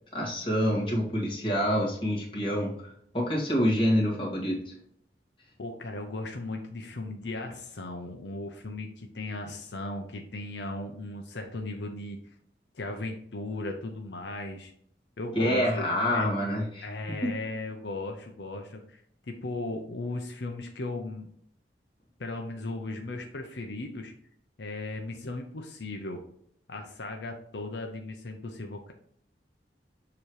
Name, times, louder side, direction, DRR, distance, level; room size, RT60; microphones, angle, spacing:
voice 1, 0.1-4.7 15.3-17.2, equal, 30° left, -3 dB, 1.9 m, -27 dB
voice 2, 5.6-12.2 12.7-14.7 15.2-16.3 16.8-19.0 19.3-21.3 22.2-24.1 24.6-26.2 26.7-28.9, left 2 dB, 80° left, 4 dB, 0.8 m, -36 dB
7.2 x 3.1 x 4.8 m, 0.67 s
head